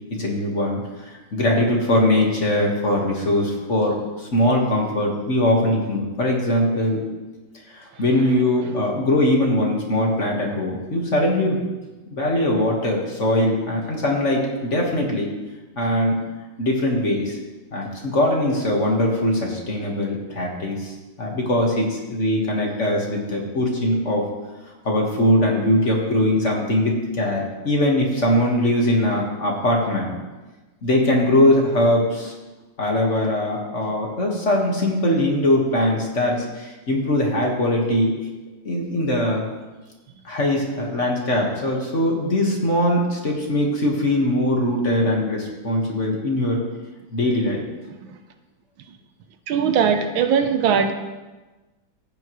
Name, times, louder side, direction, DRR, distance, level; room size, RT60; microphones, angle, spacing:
voice 1, 0.1-7.0 7.7-11.6 12.1-15.3 15.8-16.2 16.6-17.4 17.7-24.2 24.8-30.2 30.8-32.3 32.8-38.2 38.6-39.4 40.2-46.6 47.1-47.6, left 1 dB, 40° left, -1 dB, 1.7 m, -21 dB
voice 2, 49.5-50.9, right 7 dB, 80° right, 7 dB, 1.5 m, -20 dB
14.5 x 8.9 x 3.1 m, 1.2 s
omnidirectional pair, 2.2 m